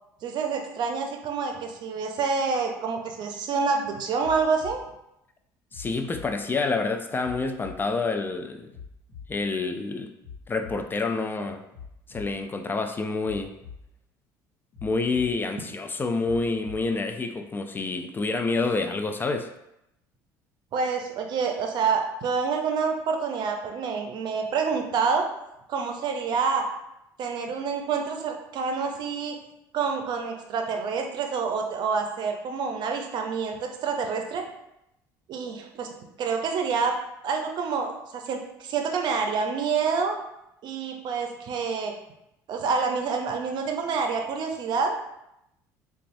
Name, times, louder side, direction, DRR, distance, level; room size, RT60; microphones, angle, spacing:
voice 1, 0.2-4.8 20.7-25.3 25.7-26.7 27.2-29.4 29.7-34.4 35.3-35.9 36.2-37.0 37.2-40.2 40.6-42.0 42.5-44.9, right 5 dB, 55° right, 4 dB, 0.5 m, -27 dB
sound 1, 4.2-4.8 5.7-6.3 7.2-7.8 8.7-9.3 10.2-10.8 11.7-12.3 13.2-13.8 14.7-15.3 16.2-16.8 17.7-17.8, left 6 dB, 60° left, 1.0 m, -43 dB
voice 2, 5.7-8.7 9.3-10.1 10.5-11.6 12.1-13.5 14.8-19.5, left 3 dB, 25° left, 6 dB, 0.3 m, -28 dB
4.0 x 2.3 x 2.6 m, 0.83 s
supercardioid pair, 80°, 9 cm